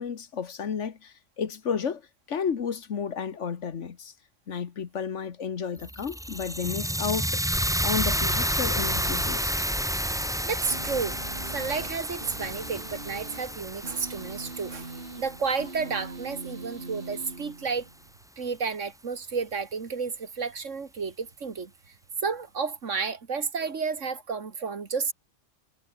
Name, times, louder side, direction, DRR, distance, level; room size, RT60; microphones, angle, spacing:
voice 1, 0.0-2.0 2.3-4.1 4.5-7.4 7.8-9.5, left 6 dB, 65° left, 1.6 m, -32 dB
sound 1, 5.8-16.0, equal, ahead, 2.4 m, -30 dB
voice 2, 10.4-11.1 11.4-17.9 18.4-21.7 22.2-25.1, right 5 dB, 70° right, 2.1 m, -31 dB
sound 2, 10.7-18.1, right 3 dB, 45° right, 2.8 m, -42 dB
omnidirectional pair, 1.4 m